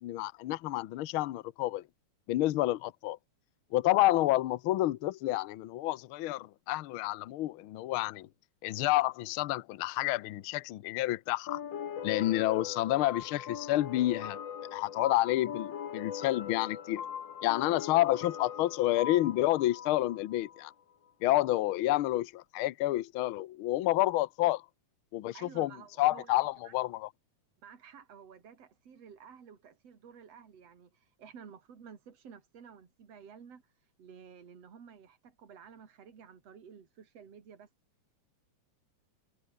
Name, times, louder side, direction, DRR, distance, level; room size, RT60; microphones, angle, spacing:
voice 1, 0.0-1.8 2.3-3.2 3.7-8.3 8.6-11.6 12.0-14.4 14.7-17.0 17.4-20.7 21.2-24.6 25.1-25.7 26.0-27.1, left 16 dB, 90° left, 1.1 m, -29 dB
sound 1, 11.5-20.7, left 8 dB, 50° left, 1.7 m, -40 dB
voice 2, 25.3-26.7 27.6-33.6 34.0-37.7, right 7 dB, 55° right, 4.1 m, -52 dB
omnidirectional pair, 3.5 m